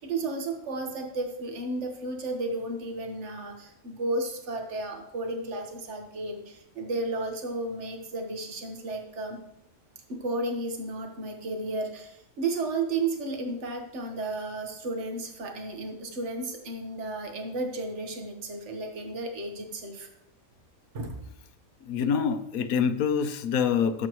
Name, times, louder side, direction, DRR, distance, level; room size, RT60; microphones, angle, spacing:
voice 1, 0.0-9.4 10.1-20.1 20.9-21.2, right 2 dB, 55° right, 3 dB, 1.6 m, -33 dB
voice 2, 21.9-24.1, left 7 dB, 85° left, 10 dB, 1.2 m, -26 dB
16.0 x 7.7 x 3.1 m, 0.82 s
omnidirectional pair, 1.5 m